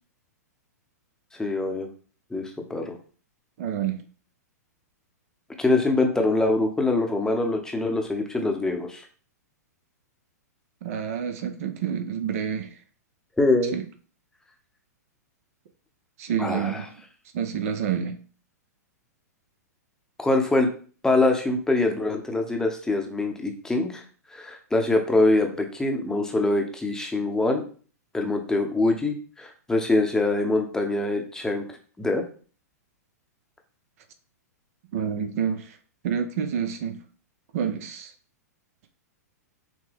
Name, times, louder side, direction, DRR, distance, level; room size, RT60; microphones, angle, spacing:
voice 1, 1.4-1.9 2.3-3.0 5.6-9.0 13.4-13.7 16.4-16.8 20.2-20.7 21.0-24.0 24.3-27.6 28.1-31.6 32.0-32.2, left 2 dB, 5° left, 0.8 m, -24 dB
voice 2, 3.6-4.0 10.8-12.7 13.7-13.8 16.2-16.9 17.3-18.2 34.9-35.8 36.0-37.0 37.5-38.1, right 8 dB, 55° right, 0.7 m, -28 dB
6.0 x 2.1 x 3.5 m
hypercardioid pair, 120°, 9 cm